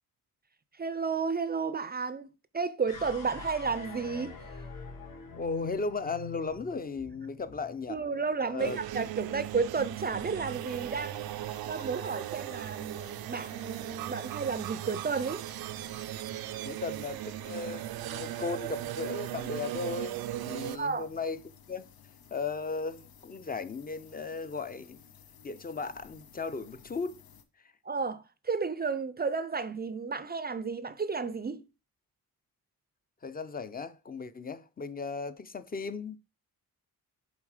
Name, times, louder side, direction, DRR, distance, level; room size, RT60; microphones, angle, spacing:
voice 1, 0.8-2.3 2.5-4.4 7.9-11.3 11.6-15.4 20.7-21.1 27.9-31.6, right 5 dB, 25° right, 0.4 m, -32 dB
sound 1, 2.9-9.2, left 5 dB, 65° left, 3.0 m, -45 dB
voice 2, 5.3-8.0 8.5-8.8 16.6-21.4 21.7-21.9 22.3-25.0 25.4-27.2 33.2-36.2, left 4 dB, 25° left, 0.5 m, -36 dB
sound 2, 8.6-20.8, right 14 dB, 90° right, 0.5 m, -38 dB
sound 3, 10.5-27.5, left 8 dB, 85° left, 0.9 m, -56 dB
7.2 x 3.9 x 4.8 m
cardioid pair, 115°, 36 cm